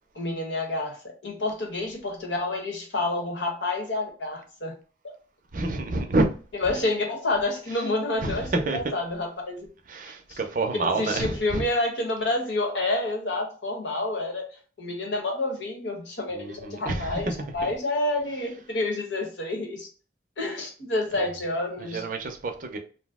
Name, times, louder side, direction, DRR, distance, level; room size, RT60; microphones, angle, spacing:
voice 1, 0.1-4.7 6.6-9.7 10.3-10.4 10.7-14.5 14.8-19.9 20.4-22.0, left 2 dB, 75° left, 1.0 m, -29 dB
voice 2, 5.5-6.3 8.2-8.8 9.9-11.6 16.3-17.2 17.6-17.7 21.8-22.8, right 2 dB, 45° right, 0.5 m, -28 dB
2.7 x 2.0 x 3.4 m
head